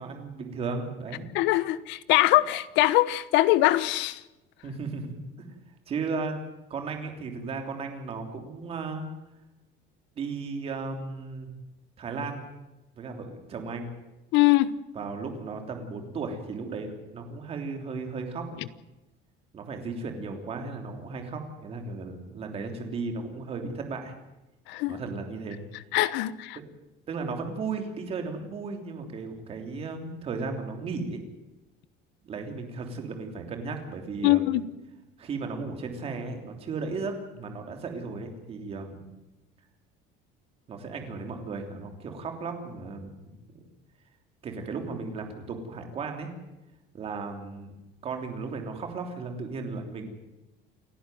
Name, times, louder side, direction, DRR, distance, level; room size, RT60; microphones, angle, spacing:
voice 1, 0.0-1.3 4.6-5.5 5.9-6.4 6.7-9.0 10.2-11.5 12.0-12.4 13.0-13.9 14.9-18.5 19.5-24.1 24.9-25.6 26.5-26.6 27.1-31.2 32.2-34.6 35.2-39.0 40.7-43.6 44.4-46.3 46.9-47.7 48.0-50.1, right 4 dB, 30° right, 3.2 m, -35 dB
voice 2, 1.3-4.2 14.3-14.7 24.7-25.0 25.9-26.6 34.2-34.6, left 17 dB, 65° left, 1.1 m, -22 dB
29.0 x 11.5 x 9.2 m
cardioid pair, 180°, 20 cm